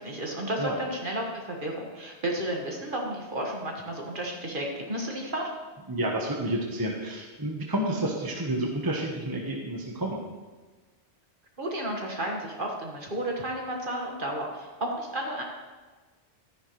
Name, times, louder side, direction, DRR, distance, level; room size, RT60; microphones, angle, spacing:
voice 1, 0.0-5.5 11.6-15.4, right 1 dB, 45° right, 0 dB, 1.8 m, -32 dB
voice 2, 5.9-10.2, right 1 dB, 20° right, -1 dB, 1.1 m, -30 dB
12.5 x 10.5 x 3.2 m, 1.3 s
omnidirectional pair, 1.2 m